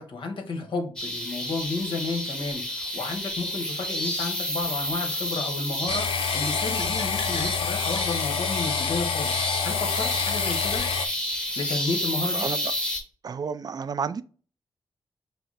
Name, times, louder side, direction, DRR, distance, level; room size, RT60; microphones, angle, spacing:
voice 1, 0.0-10.8 11.6-12.5, left 3 dB, 65° left, 1.3 m, -32 dB
sound 1, 1.0-13.0, equal, 10° left, 1.2 m, -30 dB
sound 2, 5.9-11.1, left 7 dB, 85° left, 0.4 m, -28 dB
voice 2, 12.2-12.7 13.2-14.2, right 6 dB, 45° right, 0.4 m, -31 dB
5.8 x 2.0 x 4.1 m
cardioid pair, 65°, 9 cm